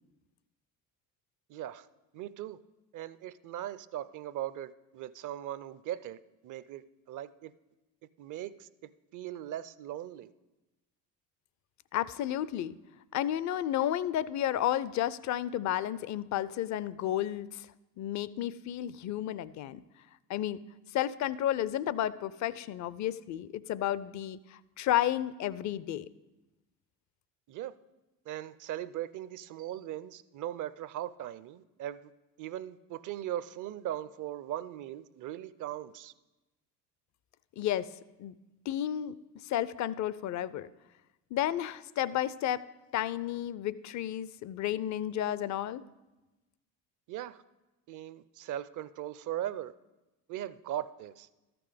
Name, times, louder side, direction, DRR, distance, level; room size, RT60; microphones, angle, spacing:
voice 1, 1.5-1.9 2.1-2.6 2.9-7.5 8.2-10.3 27.5-27.8 28.3-32.1 32.4-36.1 47.1-47.4 47.9-49.7 50.3-51.3, right 12 dB, 40° right, 16 dB, 0.5 m, -39 dB
voice 2, 11.9-12.8 13.1-17.7 18.0-19.8 20.3-20.6 20.9-26.1 37.6-37.9 38.2-38.3 38.7-39.2 39.4-40.7 41.3-42.6 42.9-45.8, left 12 dB, 40° left, 18 dB, 0.4 m, -32 dB
13.5 x 6.0 x 5.0 m, 1.0 s
hypercardioid pair, 65°, 49 cm